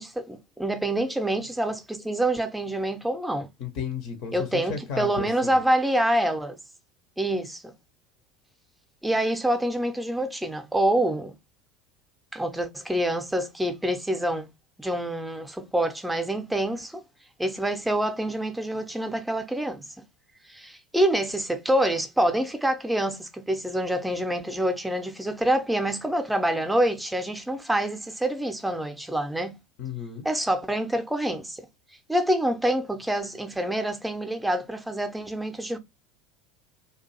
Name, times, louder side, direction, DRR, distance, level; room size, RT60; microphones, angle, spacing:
voice 1, 0.0-3.5 4.3-6.6 7.2-7.6 9.0-11.4 12.3-14.5 14.8-17.0 17.4-19.8 20.5-29.6 30.2-31.7 32.1-35.8, right 1 dB, 5° right, 0.5 m, -26 dB
voice 2, 3.6-5.6 29.8-30.2, left 7 dB, 50° left, 0.6 m, -34 dB
2.5 x 2.3 x 2.6 m
figure-of-eight pair, 70°, 0 cm